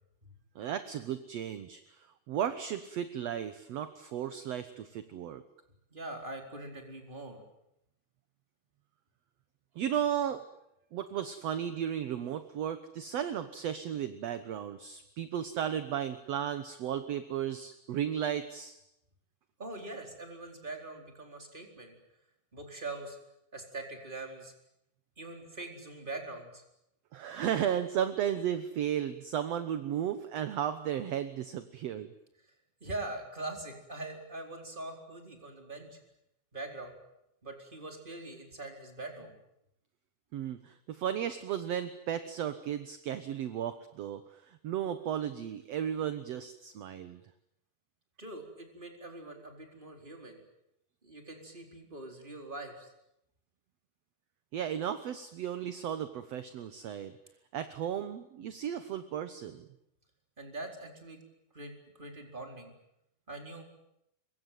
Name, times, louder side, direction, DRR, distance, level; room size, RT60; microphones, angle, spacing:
voice 1, 0.6-5.4 9.8-10.4 10.9-18.8 27.1-32.1 40.3-47.2 54.5-57.1 57.5-59.7, right 9 dB, 65° right, 10 dB, 2.0 m, -34 dB
voice 2, 5.9-7.4 19.6-21.9 22.5-23.2 23.5-24.5 25.2-26.6 32.4-32.5 32.8-36.0 36.5-36.9 37.4-39.3 48.2-50.4 51.0-52.9 60.4-61.2 61.5-62.7 63.3-63.6, right 2 dB, 15° right, 3 dB, 4.3 m, -43 dB
25.0 x 22.5 x 9.3 m, 0.83 s
omnidirectional pair, 3.6 m